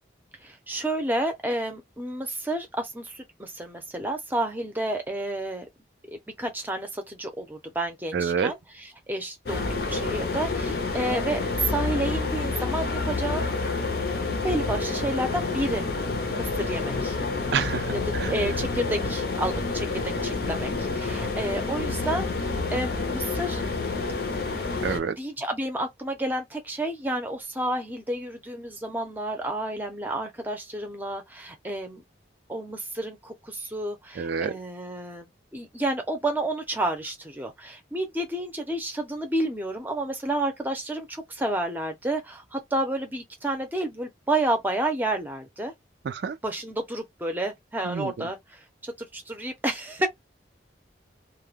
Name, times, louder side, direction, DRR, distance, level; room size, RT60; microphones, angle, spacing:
voice 1, 0.4-5.7 6.1-8.6 9.1-13.5 14.4-15.8 16.3-17.2 18.2-23.6 25.2-32.0 32.5-45.7 46.4-50.1, right 1 dB, 10° right, 0.6 m, -30 dB
voice 2, 8.1-8.5 17.5-18.3 24.8-25.2 34.2-34.6 46.0-46.4 47.8-48.3, right 6 dB, 65° right, 0.3 m, -28 dB
sound 1, 9.5-25.0, left 3 dB, 60° left, 0.6 m, -28 dB
2.3 x 2.1 x 3.2 m
head